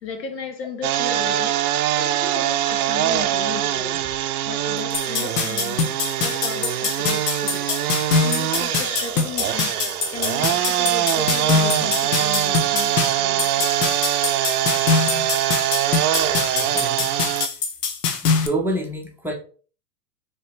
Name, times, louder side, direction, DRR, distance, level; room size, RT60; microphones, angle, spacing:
voice 1, 0.0-4.1 4.5-7.7 8.2-13.9, left 5 dB, 90° left, 1.2 m, -35 dB
sound 1, 0.8-17.5, right 12 dB, 65° right, 0.6 m, -23 dB
sound 2, 4.9-18.5, left 5 dB, 70° left, 0.9 m, -24 dB
voice 2, 16.3-17.1 18.2-19.3, right 1 dB, 5° right, 0.6 m, -28 dB
4.4 x 3.0 x 3.1 m
hypercardioid pair, 110°, 49 cm